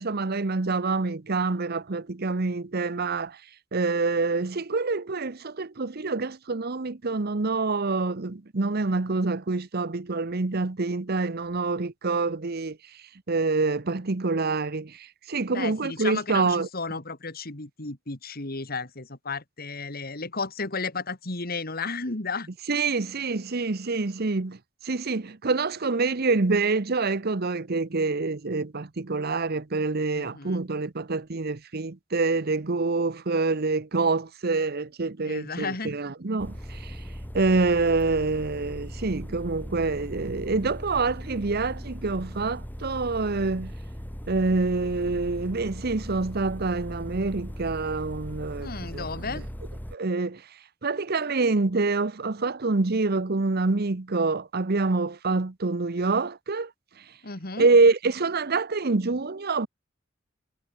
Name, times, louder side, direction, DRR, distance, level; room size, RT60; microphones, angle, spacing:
voice 1, 0.0-3.4 3.7-12.8 13.3-16.7 22.7-24.6 24.8-37.0 37.3-43.7 44.3-49.4 49.9-50.4 50.8-56.7 57.6-59.7, right 3 dB, 50° right, 0.9 m, -26 dB
voice 2, 15.5-22.5 30.1-30.6 35.2-36.0 48.6-49.5 57.2-57.7, left 4 dB, 50° left, 2.7 m, -33 dB
sound 1, 36.4-50.0, equal, 10° left, 7.6 m, -39 dB
head